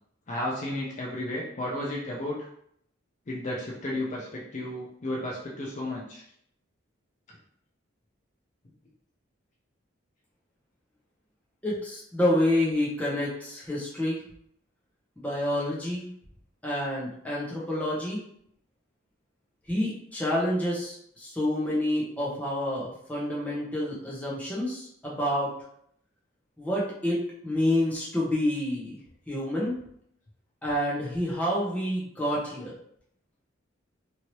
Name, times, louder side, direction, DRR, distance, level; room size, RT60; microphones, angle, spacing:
voice 1, 0.3-2.5 3.3-6.2, left 1 dB, 35° left, -4 dB, 0.5 m, -33 dB
voice 2, 11.6-14.2 15.2-16.1 16.6-18.2 19.7-25.5 26.6-29.0 29.3-29.8 30.6-32.7, left 1 dB, 5° left, -6 dB, 0.8 m, -28 dB
2.9 x 2.7 x 3.0 m, 0.70 s
head